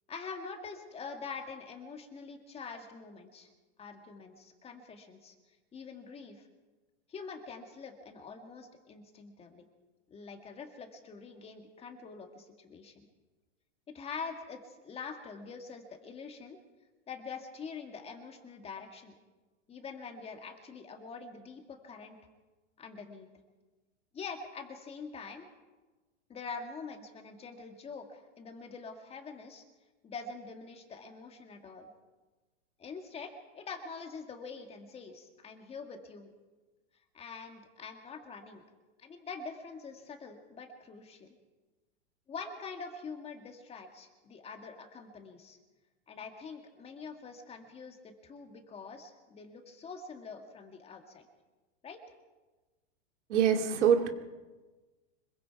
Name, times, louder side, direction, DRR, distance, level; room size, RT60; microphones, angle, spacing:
voice 1, 0.1-3.5 3.8-5.3 5.7-6.5 7.1-9.7 10.1-13.1 13.9-16.6 17.1-19.1 19.7-22.2 22.8-23.3 24.1-25.5 26.3-29.6 30.0-31.9 32.8-36.3 37.1-38.6 39.0-41.3 42.3-45.6 46.1-51.2 51.8-52.0, left 5 dB, 15° left, 5 dB, 1.9 m, -45 dB
voice 2, 53.3-54.1, right 8 dB, 70° right, 5 dB, 2.5 m, -24 dB
25.5 x 22.0 x 4.7 m, 1.2 s
supercardioid pair, 150°, 37 cm